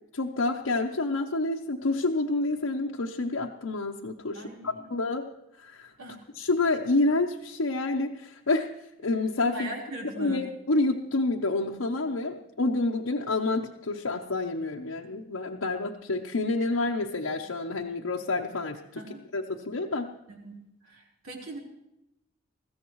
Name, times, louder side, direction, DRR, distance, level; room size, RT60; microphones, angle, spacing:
voice 1, 0.1-5.3 5.6-5.9 6.4-8.7 9.0-9.7 10.2-19.0 19.3-20.1, left 2 dB, 90° left, -1 dB, 0.9 m, -28 dB
voice 2, 4.3-4.9 6.0-6.2 9.5-10.4 19.0-19.2 20.4-21.6, right 2 dB, 85° right, -1 dB, 4.2 m, -40 dB
21.0 x 15.5 x 3.1 m, 0.87 s
head